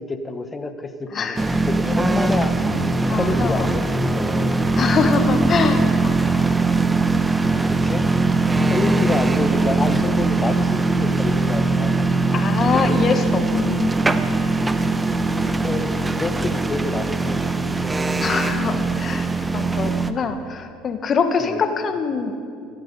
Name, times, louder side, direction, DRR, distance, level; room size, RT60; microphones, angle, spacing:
voice 1, 0.0-2.6 3.1-3.8 4.1-4.6 7.7-8.0 8.7-12.1 15.6-17.9 21.4-21.6, left 3 dB, 20° left, 8 dB, 1.2 m, -28 dB
sound 1, 1.4-20.1, right 3 dB, 15° right, 0.8 m, -21 dB
voice 2, 3.1-3.7 4.8-6.2 8.5-9.1 12.3-14.0 18.2-22.4, left 5 dB, 40° left, 8 dB, 1.4 m, -24 dB
15.0 x 11.5 x 5.4 m, 2.4 s
hypercardioid pair, 75°, 0 cm